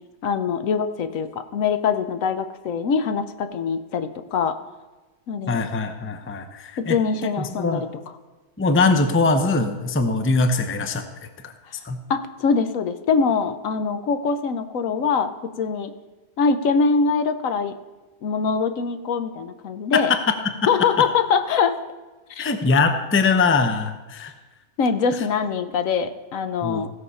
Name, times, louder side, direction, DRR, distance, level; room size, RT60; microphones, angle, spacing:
voice 1, 0.2-4.6 5.3-5.6 6.8-7.9 12.1-15.3 15.6-15.9 16.4-17.7 18.2-20.1 20.7-21.8 22.3-22.5 24.8-26.9, left 5 dB, 75° left, 10 dB, 1.2 m, -23 dB
voice 2, 5.5-7.0 7.4-7.8 8.6-11.0 11.4-11.5 11.8-12.0 19.9-20.2 22.4-24.3 26.6-26.8, left 3 dB, 15° left, 7 dB, 0.5 m, -21 dB
16.5 x 6.5 x 5.6 m, 1.2 s
omnidirectional pair, 1.4 m